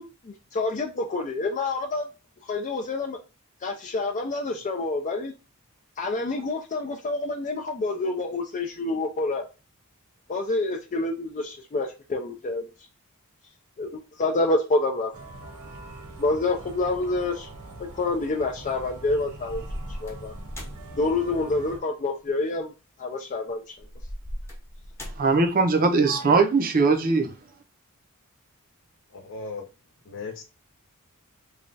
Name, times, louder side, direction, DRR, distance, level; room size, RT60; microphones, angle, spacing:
voice 1, 0.0-2.1 2.4-3.2 3.6-5.3 6.0-9.5 10.3-12.6 13.8-15.1 16.2-17.5 17.8-19.6 20.0-20.3 21.0-22.7 23.0-23.8, left 2 dB, 35° left, 0.4 m, -27 dB
sound 1, 15.1-21.8, right 2 dB, 75° right, 1.0 m, -42 dB
sound 2, 18.3-18.8 19.5-21.0 22.3-22.4 23.8-25.5, equal, 10° left, 0.8 m, -38 dB
voice 2, 25.2-27.3, right 4 dB, 40° right, 0.5 m, -20 dB
voice 3, 29.2-29.6 30.1-30.4, left 4 dB, 60° left, 0.8 m, -36 dB
3.2 x 2.2 x 3.9 m
head